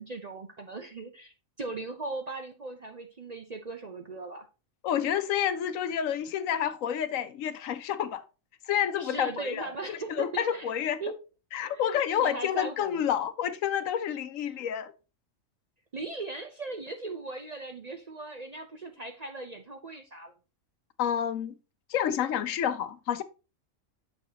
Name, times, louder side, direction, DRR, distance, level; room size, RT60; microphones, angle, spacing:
voice 1, 0.0-4.5 9.0-10.7 11.0-11.1 11.7-13.1 15.9-20.3, right 3 dB, 40° right, 0.6 m, -38 dB
voice 2, 4.8-8.2 8.7-11.0 11.5-14.9 21.0-21.5 21.9-23.2, left 9 dB, 75° left, 1.0 m, -29 dB
8.6 x 6.5 x 2.8 m
omnidirectional pair, 1.4 m